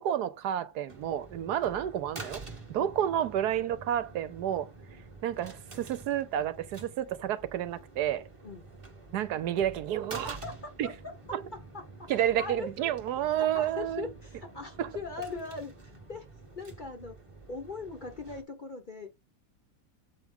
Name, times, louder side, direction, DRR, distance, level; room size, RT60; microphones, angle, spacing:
voice 1, 0.0-2.4 2.7-4.7 5.2-8.2 9.1-10.4 10.8-10.9 11.3-11.4 12.1-14.1 14.8-14.9, right 10 dB, 80° right, 1.2 m, -30 dB
sound 1, 0.9-18.4, right 3 dB, 20° right, 1.1 m, -48 dB
voice 2, 10.2-12.7 13.4-16.3 16.6-17.1 17.5-19.1, left 3 dB, 40° left, 0.8 m, -41 dB
7.6 x 4.7 x 3.6 m
omnidirectional pair, 1.8 m